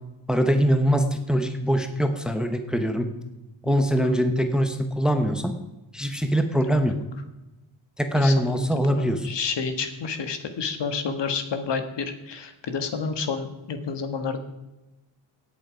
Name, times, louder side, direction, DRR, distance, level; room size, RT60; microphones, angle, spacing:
voice 1, 0.3-3.1 3.6-5.5 5.9-7.0 8.0-9.3, equal, ahead, 7 dB, 1.0 m, -23 dB
voice 2, 8.1-14.4, left 5 dB, 60° left, 8 dB, 1.6 m, -30 dB
17.5 x 8.3 x 5.1 m, 1.0 s
cardioid pair, 130°, 48 cm